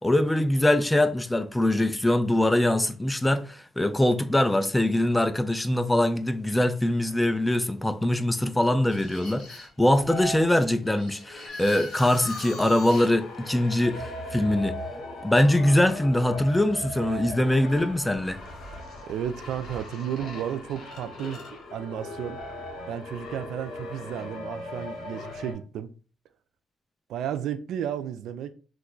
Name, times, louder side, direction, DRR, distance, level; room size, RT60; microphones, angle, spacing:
voice 1, 0.0-14.8 15.2-18.4, left 1 dB, 10° left, 0.3 m, -23 dB
sound 1, 8.9-25.5, left 1 dB, 75° left, 1.0 m, -39 dB
Motor vehicle (road) / Siren, 11.5-24.1, left 3 dB, 55° left, 0.6 m, -46 dB
voice 2, 19.0-22.4 22.9-25.9 27.1-28.5, right 9 dB, 80° right, 0.3 m, -33 dB
3.0 x 2.2 x 3.8 m
cardioid pair, 90°, 0 cm